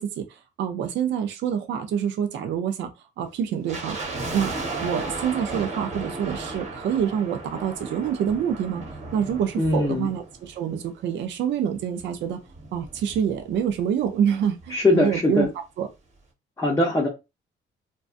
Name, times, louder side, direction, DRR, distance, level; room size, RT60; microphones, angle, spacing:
voice 1, 0.0-2.9 3.2-4.0 4.3-8.8 9.1-12.4 12.7-15.9, right 8 dB, 65° right, 0.4 m, -26 dB
sound 1, 3.7-11.0 11.2-11.3 12.0-13.8 14.1-14.2 14.4-14.7 15.1-15.2, right 3 dB, 35° right, 1.0 m, -35 dB
voice 2, 9.6-10.1 14.7-15.5 16.6-17.1, left 2 dB, 15° left, 0.7 m, -21 dB
2.6 x 2.2 x 2.4 m
cardioid pair, 90°, 20 cm